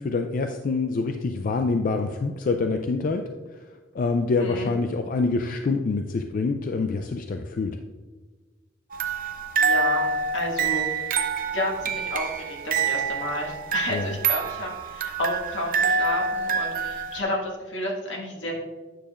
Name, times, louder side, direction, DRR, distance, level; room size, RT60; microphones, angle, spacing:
voice 1, 0.0-7.8 13.9-14.1, left 3 dB, 45° left, 6 dB, 0.4 m, -26 dB
voice 2, 4.4-4.7 9.6-11.1 11.5-18.5, left 1 dB, 80° left, -1 dB, 1.7 m, -31 dB
sound 1, 8.9-17.2, right 5 dB, 50° right, 0.5 m, -26 dB
9.1 x 6.8 x 2.4 m, 1.3 s
head